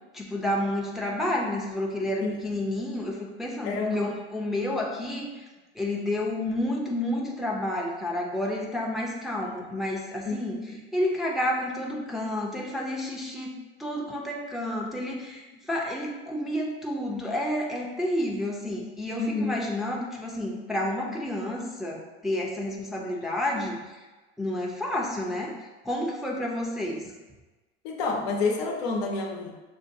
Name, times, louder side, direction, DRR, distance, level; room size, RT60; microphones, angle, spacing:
voice 1, 0.1-5.5 5.7-10.6 10.9-13.5 13.8-24.0 24.4-25.5 25.8-27.1, left 1 dB, ahead, -3 dB, 0.6 m, -30 dB
voice 2, 2.2-2.5 3.6-4.2 10.3-10.8 19.2-19.6 23.2-23.3 27.8-29.5, left 3 dB, 65° left, 1 dB, 0.8 m, -29 dB
6.4 x 2.2 x 2.6 m, 1.2 s
hypercardioid pair, 95°, 33 cm